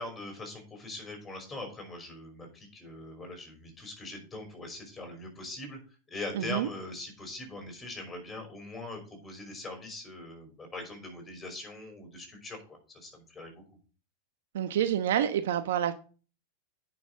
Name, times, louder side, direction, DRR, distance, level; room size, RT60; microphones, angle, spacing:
voice 1, 0.0-5.8 6.1-13.6, left 2 dB, 15° left, 5.4 m, -42 dB
voice 2, 6.3-6.7 14.5-15.9, right 10 dB, 70° right, 1.0 m, -28 dB
9.6 x 6.3 x 6.3 m
hypercardioid pair, 100°, 0 cm